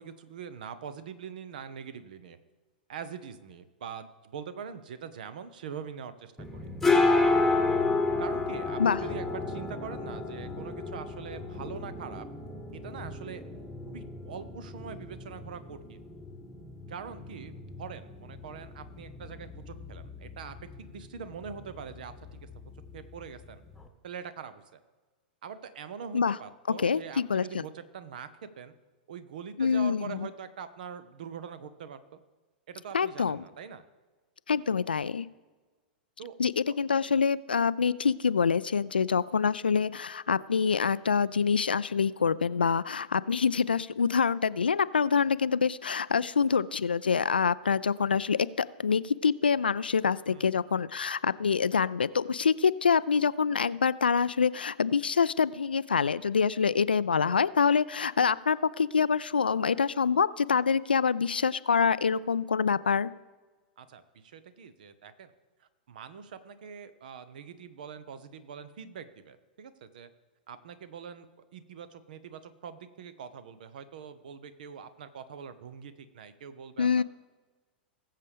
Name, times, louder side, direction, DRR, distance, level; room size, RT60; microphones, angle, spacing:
voice 1, 0.0-2.4 2.9-6.7 8.2-12.3 12.8-13.4 13.9-16.0 16.9-17.5 17.8-22.5 22.9-23.6 24.0-24.8 25.4-28.7 29.1-32.2 32.7-33.8 36.2-36.3 50.3-50.5 63.8-65.3 65.9-70.1 70.5-71.3 71.5-77.0, right 7 dB, 60° right, 13 dB, 0.9 m, -43 dB
sound 1, 6.4-23.9, left 3 dB, 5° left, 1.3 m, -32 dB
voice 2, 26.8-27.6 29.6-30.3 32.9-33.4 34.5-35.3 36.4-63.1 76.8-77.0, left 6 dB, 75° left, 18 dB, 0.3 m, -26 dB
19.5 x 7.5 x 3.4 m, 1.3 s
figure-of-eight pair, 100°, 5 cm